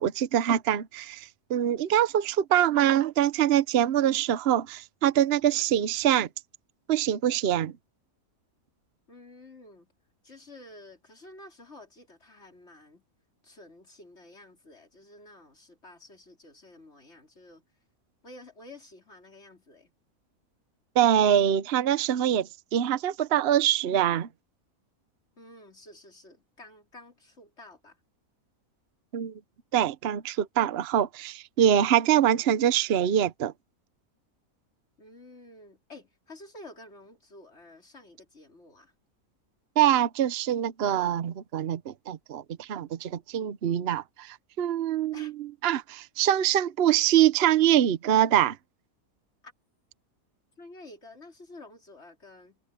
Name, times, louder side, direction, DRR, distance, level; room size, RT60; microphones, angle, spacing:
voice 1, 0.0-6.3 6.9-7.7 21.0-24.3 29.1-29.3 29.7-33.5 39.8-48.6, right 10 dB, 50° right, 0.9 m, -24 dB
voice 2, 9.1-9.9 10.2-13.0 13.4-17.6 18.2-19.9 25.4-28.0 35.0-38.9 45.1-45.3 49.4-49.5 50.6-52.6, left 2 dB, 50° left, 4.7 m, -50 dB
omnidirectional pair, 1.5 m